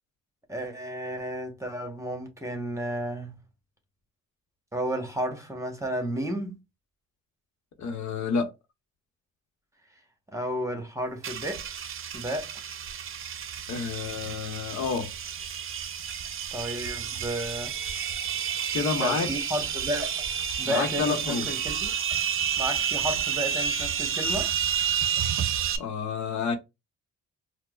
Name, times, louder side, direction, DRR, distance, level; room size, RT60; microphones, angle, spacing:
voice 1, 0.5-3.4 4.7-6.6 10.3-11.6 12.1-12.5 16.5-17.7 19.0-20.2 20.6-21.9 22.6-24.5, equal, 10° right, 1.0 m, -32 dB
voice 2, 7.8-8.5 13.7-15.1 18.7-19.3 20.6-21.5 25.8-26.5, left 5 dB, 70° left, 0.9 m, -29 dB
sound 1, 11.2-25.8, right 8 dB, 45° right, 0.6 m, -30 dB
4.5 x 2.1 x 2.3 m
cardioid pair, 90°, 30 cm